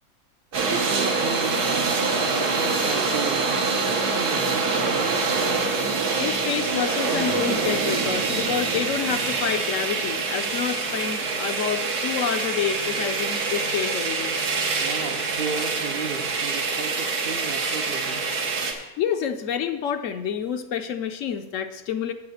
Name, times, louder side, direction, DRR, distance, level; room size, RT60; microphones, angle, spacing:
voice 1, 0.5-5.8 14.8-18.3, right 5 dB, 55° right, 8 dB, 0.7 m, -34 dB
sound 1, 0.5-18.7, right 4 dB, 90° right, 1.8 m, -25 dB
voice 2, 6.2-14.4 19.0-22.1, left 8 dB, 70° left, 8 dB, 0.9 m, -28 dB
8.4 x 5.6 x 7.9 m, 1.1 s
omnidirectional pair, 1.6 m